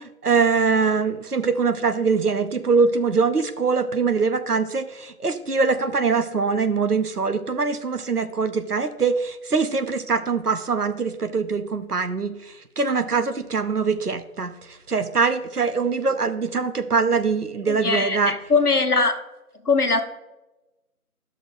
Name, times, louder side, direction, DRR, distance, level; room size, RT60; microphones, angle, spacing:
voice 1, 0.0-18.3, right 5 dB, 85° right, 9 dB, 0.9 m, -23 dB
voice 2, 17.7-19.1 19.6-20.0, left 4 dB, 80° left, 6 dB, 1.1 m, -21 dB
11.0 x 6.2 x 2.6 m, 0.99 s
figure-of-eight pair, 175°, 45 cm